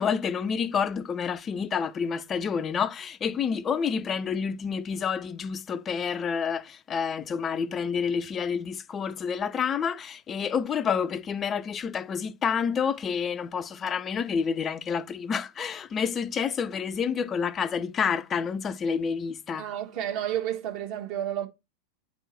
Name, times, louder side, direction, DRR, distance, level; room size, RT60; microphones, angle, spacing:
voice 1, 0.0-19.7, left 6 dB, 25° left, 0.4 m, -29 dB
voice 2, 19.6-21.5, right 11 dB, 45° right, 1.5 m, -31 dB
9.3 x 3.6 x 4.1 m
figure-of-eight pair, 90°, 0 cm